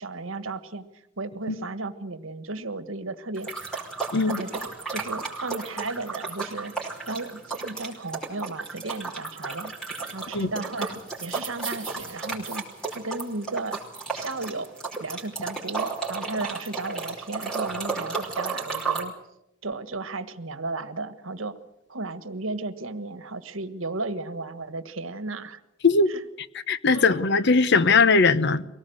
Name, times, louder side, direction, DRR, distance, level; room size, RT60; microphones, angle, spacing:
voice 1, 0.0-3.5 4.3-6.7 7.1-12.6 12.9-13.8 14.1-14.7 15.0-19.1 19.6-21.6 21.9-25.6 26.1-26.2 26.9-27.2, right 3 dB, 75° right, 1.6 m, -34 dB
sound 1, 3.4-19.0, right 4 dB, 5° left, 5.1 m, -33 dB
voice 2, 26.7-28.6, left 4 dB, 60° left, 1.0 m, -19 dB
23.5 x 18.5 x 8.0 m
head